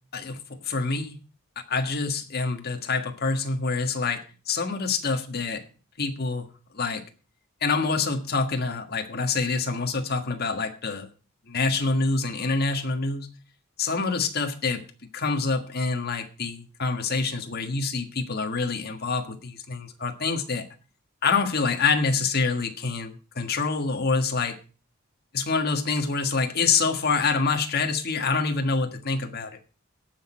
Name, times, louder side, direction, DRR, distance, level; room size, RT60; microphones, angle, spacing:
voice 1, 0.1-1.2 1.7-5.6 6.0-6.4 6.7-7.0 7.6-11.1 11.5-13.3 13.8-14.8 15.1-20.6 21.2-24.6 25.3-29.6, left 4 dB, 45° left, 6 dB, 1.6 m, -26 dB
17.5 x 6.3 x 4.4 m, 0.35 s
head